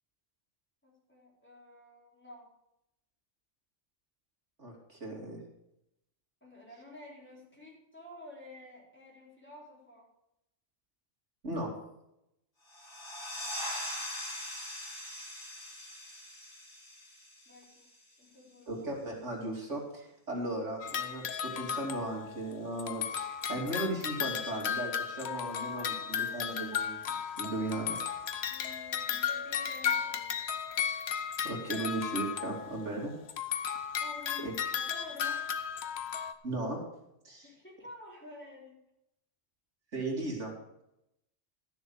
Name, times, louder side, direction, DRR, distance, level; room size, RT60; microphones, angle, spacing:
voice 1, 0.8-2.5 6.4-10.1 17.5-17.9 18.2-18.9 28.5-30.3 34.0-35.6 37.4-38.8, left 2 dB, 10° left, -5 dB, 4.0 m, -51 dB
voice 2, 4.6-5.4 11.4-11.7 18.7-27.0 27.4-28.0 31.4-33.1 34.4-34.5 36.4-36.8 37.2-37.5 39.9-40.5, right 2 dB, 80° right, -1 dB, 3.2 m, -36 dB
sound 1, 12.7-18.0, left 1 dB, 45° left, 3.4 m, -41 dB
sound 2, 20.8-22.5 22.8-33.0 33.3-36.3, left 8 dB, 65° left, 1.0 m, -35 dB
13.0 x 6.9 x 7.0 m, 0.83 s
omnidirectional pair, 1.2 m